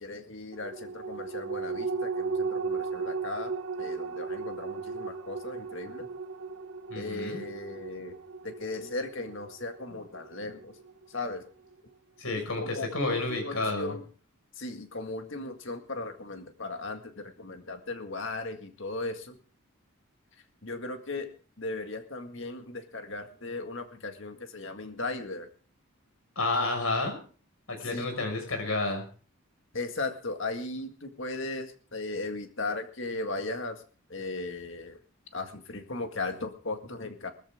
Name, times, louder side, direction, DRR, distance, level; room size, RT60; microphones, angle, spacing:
voice 1, 0.0-6.1 7.0-8.2 8.4-10.8 11.1-11.4 12.6-14.0 14.6-19.4 20.6-21.3 21.6-25.5 27.8-28.1 29.7-33.8 34.1-35.0 35.3-37.3, left 2 dB, 55° left, 6 dB, 1.9 m, -37 dB
sound 1, 0.5-11.3 11.7-11.8, right 4 dB, 70° right, 1.1 m, -36 dB
voice 2, 6.9-7.4 12.2-14.0 26.4-27.2 27.7-29.0, left 2 dB, 75° left, 5 dB, 5.6 m, -30 dB
19.5 x 14.5 x 3.7 m, 0.40 s
head